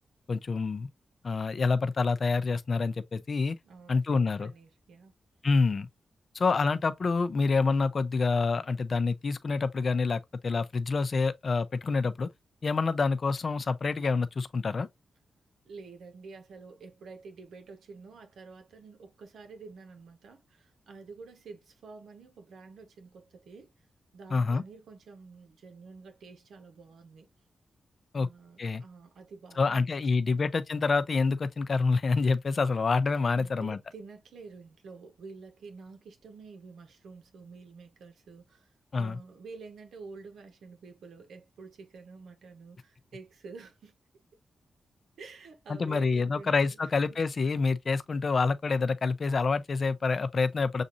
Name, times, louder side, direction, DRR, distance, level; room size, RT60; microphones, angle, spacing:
voice 1, 0.3-0.9 1.2-3.6 3.9-4.5 5.4-5.9 6.3-12.3 12.6-14.9 24.3-24.6 28.1-28.3 28.6-28.8 29.6-33.8 38.9-39.2 45.7-50.8, left 4 dB, 50° left, 0.6 m, -27 dB
voice 2, 3.6-5.1 15.6-23.7 24.1-27.3 28.2-29.9 30.2-30.4 33.4-43.9 45.2-47.2, right 4 dB, 85° right, 1.2 m, -49 dB
7.1 x 2.6 x 2.6 m
cardioid pair, 80°, 0 cm